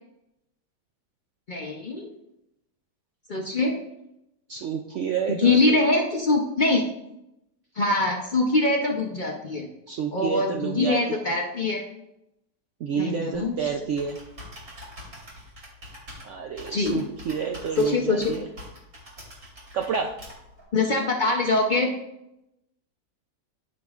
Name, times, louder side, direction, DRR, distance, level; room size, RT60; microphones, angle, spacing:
voice 1, 1.5-2.1 3.3-3.7 5.3-6.8 7.8-9.7 10.1-11.8 12.9-13.7 16.7-17.0 17.8-18.3 20.7-21.9, left 3 dB, 70° left, 1 dB, 0.4 m, -23 dB
voice 2, 4.5-5.8 9.9-11.0 12.8-14.2 16.2-18.4 19.7-20.2, right 6 dB, 80° right, 3 dB, 0.6 m, -29 dB
Computer keyboard, 13.3-20.6, left 1 dB, 55° right, 3.4 m, -45 dB
14.5 x 5.2 x 2.4 m, 0.88 s
omnidirectional pair, 1.8 m